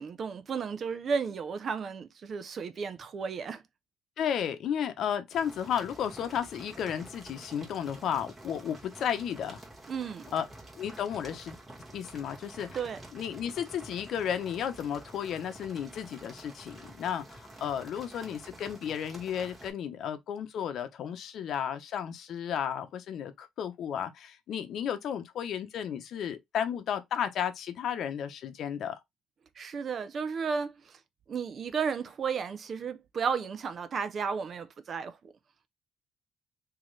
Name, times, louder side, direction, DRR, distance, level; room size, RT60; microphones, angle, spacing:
voice 1, 0.0-3.6 9.9-10.3 12.7-13.0 29.6-31.0 31.3-35.2, right 6 dB, 50° right, 0.6 m, -33 dB
voice 2, 4.2-9.6 10.3-10.4 10.8-11.6 11.9-12.7 13.1-28.9, left 9 dB, 65° left, 0.7 m, -33 dB
sound 1, 5.3-19.7, right 1 dB, 20° right, 1.7 m, -49 dB
3.1 x 2.8 x 3.8 m
cardioid pair, 80°, 0 cm